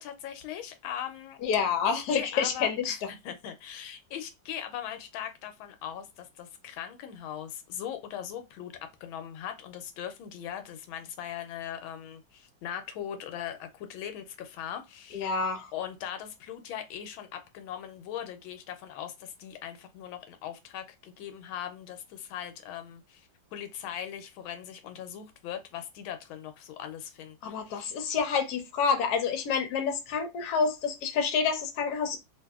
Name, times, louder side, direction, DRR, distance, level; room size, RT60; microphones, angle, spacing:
voice 1, 0.0-1.4 1.8-15.3 15.7-28.0, left 10 dB, 90° left, 1.4 m, -40 dB
voice 2, 1.4-2.9 15.1-15.7 27.4-32.2, left 6 dB, 65° left, 1.1 m, -28 dB
3.4 x 2.6 x 2.3 m
omnidirectional pair, 2.1 m